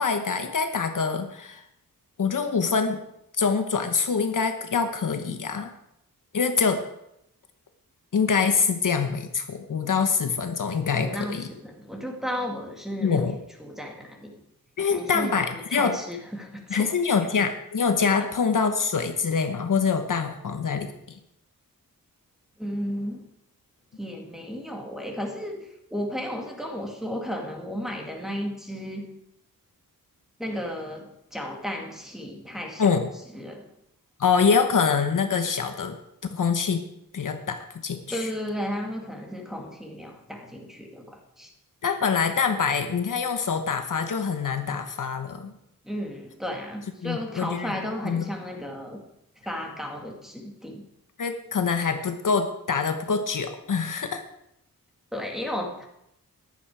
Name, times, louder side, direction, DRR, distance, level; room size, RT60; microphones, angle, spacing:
voice 1, 0.0-1.6 2.2-3.0 3.4-5.7 6.3-6.8 8.1-11.5 13.0-13.4 14.8-16.0 16.7-21.2 32.8-33.1 34.2-36.0 36.3-36.8 37.1-38.3 41.8-45.5 47.0-47.7 48.0-48.3 51.2-54.2, left 5 dB, 60° left, 6 dB, 1.1 m, -25 dB
voice 2, 11.0-13.3 13.6-14.4 14.8-15.4 15.7-16.9 17.2-17.3 18.2-18.3 22.6-23.2 24.0-29.1 30.4-33.0 33.3-33.7 38.1-41.5 45.8-49.0 49.4-50.8 55.1-55.8, equal, ahead, 0 dB, 2.1 m, -34 dB
14.5 x 11.0 x 4.8 m, 0.80 s
wide cardioid pair, 170°, 35 cm